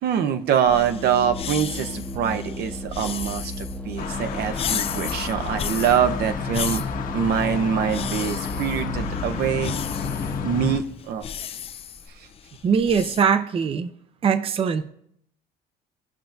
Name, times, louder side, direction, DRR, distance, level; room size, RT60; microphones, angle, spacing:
voice 1, 0.0-6.8 7.1-9.7 10.4-11.3 12.1-12.3, right 8 dB, 75° right, 8 dB, 0.8 m, -24 dB
Organ, 0.6-10.9, left 1 dB, 10° left, 0.7 m, -35 dB
sound 1, 0.7-13.2, left 8 dB, 35° left, 0.4 m, -35 dB
sound 2, 4.0-10.8, left 6 dB, 55° left, 1.1 m, -31 dB
voice 2, 12.6-13.9 14.2-14.8, right 6 dB, 35° right, 11 dB, 0.5 m, -21 dB
17.0 x 5.8 x 2.6 m, 0.71 s
cardioid pair, 110°, 17 cm